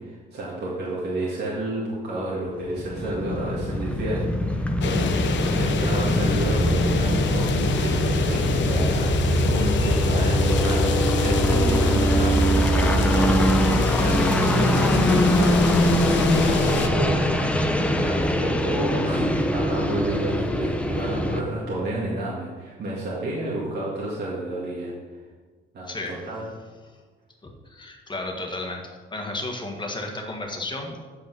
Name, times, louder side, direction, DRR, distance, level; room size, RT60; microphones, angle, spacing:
voice 1, 0.0-24.9 25.7-26.5, right 1 dB, 55° right, -6 dB, 2.1 m, -31 dB
sound 1, 2.6-21.4, equal, 5° left, 0.9 m, -22 dB
sound 2, 4.8-16.9, left 6 dB, 65° left, 0.9 m, -28 dB
voice 2, 25.9-26.2 27.7-28.8 29.1-31.1, left 2 dB, 25° left, 1 dB, 1.7 m, -32 dB
8.4 x 5.4 x 6.1 m, 1.4 s
cardioid pair, 90°, 20 cm